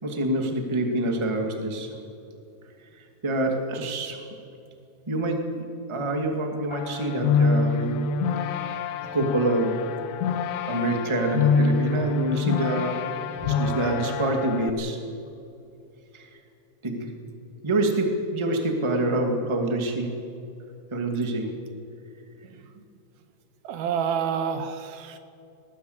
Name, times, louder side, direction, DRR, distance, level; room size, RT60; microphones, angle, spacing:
voice 1, 0.0-1.9 3.0-4.2 5.1-8.1 8.4-8.7 9.1-9.8 10.7-13.0 13.4-15.0 16.1-16.3 16.8-17.1 17.6-20.1 20.9-21.5, right 1 dB, 10° right, 3 dB, 1.4 m, -26 dB
sound 1, 6.7-14.7, left 5 dB, 70° left, 2.0 m, -26 dB
voice 2, 22.4-22.9 23.6-25.2, right 7 dB, 80° right, 9 dB, 3.0 m, -29 dB
20.0 x 17.5 x 8.1 m, 2.7 s
omnidirectional pair, 4.3 m